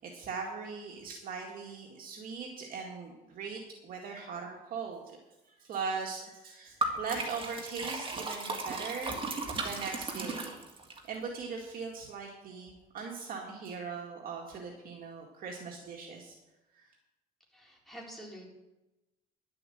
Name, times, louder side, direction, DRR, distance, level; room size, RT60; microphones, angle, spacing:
voice 1, 0.0-5.2 5.4-10.5 11.1-16.4 16.7-16.8, right 5 dB, 55° right, 0 dB, 2.1 m, -40 dB
Liquid, 6.8-11.0, right 2 dB, 30° right, 2.0 m, -36 dB
voice 2, 17.5-18.5, equal, ahead, -3 dB, 4.0 m, -47 dB
11.0 x 7.8 x 7.8 m, 0.99 s
cardioid pair, 110°, 17 cm